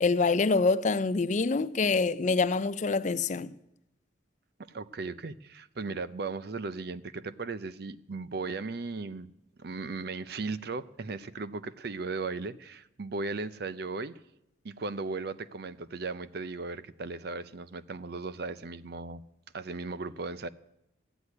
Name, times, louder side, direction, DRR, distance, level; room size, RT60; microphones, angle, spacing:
voice 1, 0.0-3.5, left 4 dB, 40° left, 0.4 m, -26 dB
voice 2, 4.6-9.3 9.6-14.1 14.6-19.2 19.5-20.5, right 3 dB, 55° right, 0.6 m, -37 dB
14.0 x 8.2 x 9.5 m
head